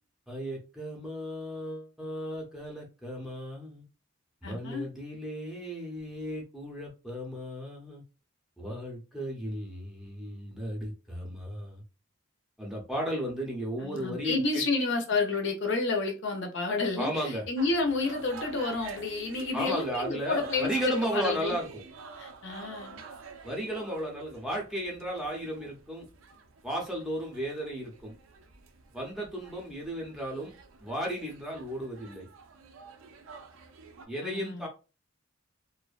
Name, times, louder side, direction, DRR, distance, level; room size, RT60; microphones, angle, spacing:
voice 1, 0.3-3.8 4.4-8.0 8.6-11.8 12.6-14.6 17.0-17.5 19.5-21.8 23.4-26.1 26.6-28.1 28.9-30.5 30.8-32.3 34.1-34.7, equal, ahead, 0.5 m, -35 dB
voice 2, 4.4-4.9 13.8-20.7 21.1-21.6 22.2-23.0 34.2-34.7, left 3 dB, 55° left, 0.5 m, -30 dB
sound 1, 17.6-34.1, right 5 dB, 75° right, 0.4 m, -48 dB
2.5 x 2.1 x 2.4 m
head